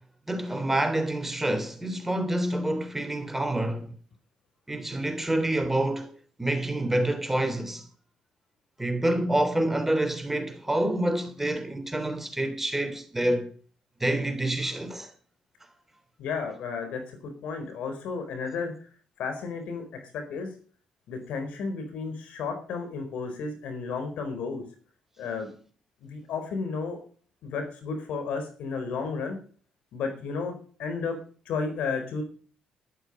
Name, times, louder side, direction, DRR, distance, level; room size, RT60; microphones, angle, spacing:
voice 1, 0.3-3.9 4.7-6.1 6.4-7.9 8.8-13.5 14.0-15.1, right 1 dB, 10° right, 3.2 m, -27 dB
voice 2, 16.2-18.7 19.2-20.5 21.1-24.6 25.2-25.5 26.0-27.0 27.4-29.4 29.9-30.5 30.8-31.2 31.5-32.2, left 5 dB, 75° left, 4.4 m, -33 dB
12.0 x 11.5 x 5.4 m
supercardioid pair, 60°, 2 cm